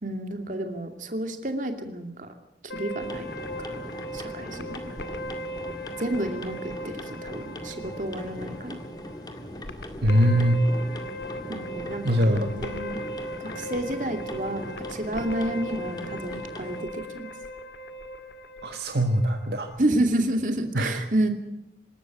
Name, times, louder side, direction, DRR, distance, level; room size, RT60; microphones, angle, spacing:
voice 1, 0.0-2.3 2.7-3.3 3.6-3.9 4.1-4.9 6.0-8.8 11.5-13.0 13.4-17.3 19.8-21.3, right 1 dB, 45° right, 5 dB, 2.6 m, -30 dB
sound 1, 2.7-19.8, equal, 75° left, 2.1 m, -38 dB
sound 2, 3.0-16.8, left 1 dB, 25° left, 2.0 m, -40 dB
voice 2, 10.0-10.6 12.0-12.5 18.6-19.7 20.7-21.0, equal, 65° right, 5 dB, 1.5 m, -22 dB
26.0 x 13.0 x 8.2 m, 0.84 s
head